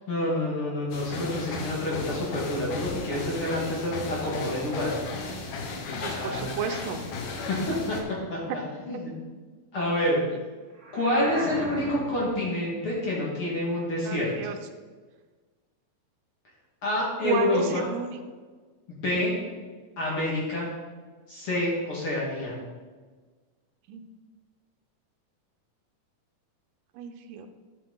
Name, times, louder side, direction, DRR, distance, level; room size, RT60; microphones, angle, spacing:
voice 1, 0.1-5.0 6.1-6.5 7.7-8.0 8.3-9.1 9.7-10.2 10.9-14.5 16.8-17.9 18.9-19.3 20.0-20.7 21.3-22.5, left 1 dB, 45° left, -5 dB, 2.4 m, -28 dB
sound 1, 0.9-8.0, left 3 dB, 65° left, 2.1 m, -35 dB
voice 2, 6.0-7.0 14.0-14.6 17.2-18.2 23.9-24.0 27.0-27.5, right 7 dB, 85° right, 6 dB, 2.3 m, -32 dB
sound 2, 10.8-12.4, right 2 dB, 40° right, 1.1 m, -37 dB
12.0 x 6.1 x 3.9 m, 1.4 s
omnidirectional pair, 3.7 m